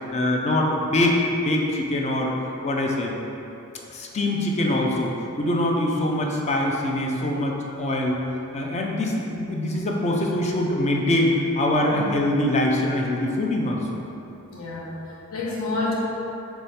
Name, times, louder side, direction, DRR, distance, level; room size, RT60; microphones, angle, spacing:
voice 1, 0.1-1.2 1.4-2.3 2.6-3.2 3.9-8.2 8.5-13.8, left 1 dB, 30° left, -1 dB, 0.5 m, -23 dB
voice 2, 14.5-15.9, left 3 dB, 75° left, -5 dB, 0.9 m, -29 dB
3.6 x 3.4 x 4.2 m, 2.9 s
head